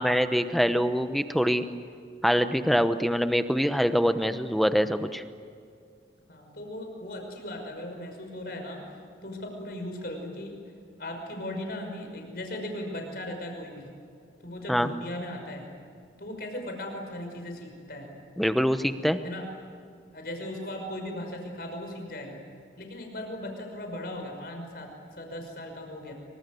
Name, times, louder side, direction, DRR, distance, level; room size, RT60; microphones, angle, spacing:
voice 1, 0.0-1.7 2.2-5.2 14.7-14.9 18.4-19.2, equal, ahead, 9 dB, 0.9 m, -24 dB
voice 2, 6.3-10.6 11.0-13.9 14.4-15.7 16.2-18.1 19.2-19.5 20.1-22.4 22.8-26.1, left 1 dB, 55° left, 3 dB, 5.8 m, -38 dB
26.5 x 25.0 x 7.9 m, 2.3 s
head